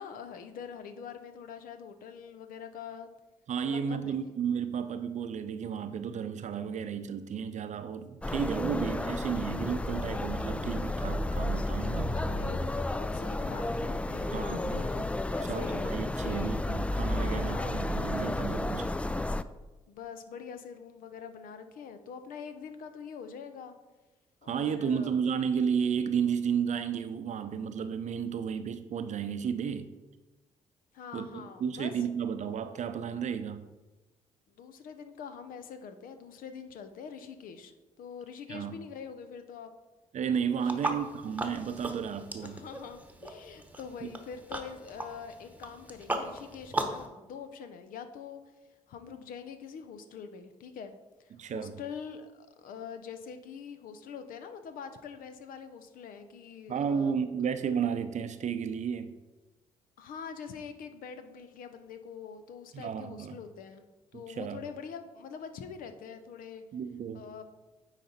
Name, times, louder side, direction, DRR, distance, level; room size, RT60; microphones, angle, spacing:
voice 1, 0.0-3.1 3.6-4.2 12.1-16.6 17.2-17.8 19.9-23.7 24.4-25.2 30.9-31.9 34.5-39.7 40.6-40.7 42.4-48.4 48.9-57.2 60.0-63.8 64.1-66.6 67.1-67.4, left 6 dB, 60° left, 9 dB, 0.7 m, -44 dB
voice 2, 3.5-12.1 14.3-15.0 15.5-18.9 24.5-29.9 31.1-33.6 38.5-38.8 40.1-42.6 44.0-44.1 51.3-51.7 56.7-59.1 62.7-63.4 64.1-64.6 66.7-67.2, right 7 dB, 50° right, 10 dB, 0.6 m, -33 dB
sound 1, 8.2-19.4, left 1 dB, 10° left, 0.3 m, -32 dB
sound 2, 40.6-47.1, right 2 dB, 10° right, 1.1 m, -38 dB
9.0 x 4.1 x 4.3 m, 1.1 s
hypercardioid pair, 45°, 16 cm